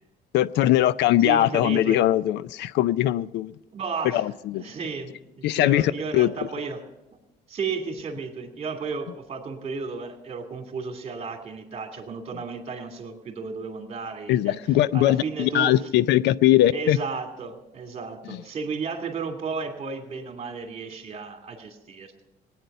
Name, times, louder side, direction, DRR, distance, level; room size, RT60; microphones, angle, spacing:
voice 1, 0.3-3.5 4.1-4.7 5.4-6.3 14.3-17.0, left 13 dB, 75° left, 0.5 m, -21 dB
voice 2, 1.2-2.0 3.7-4.3 4.5-6.8 7.5-15.9 16.7-22.1, right 5 dB, 35° right, 2.6 m, -33 dB
18.5 x 9.6 x 6.7 m
cardioid pair, 125°, 18 cm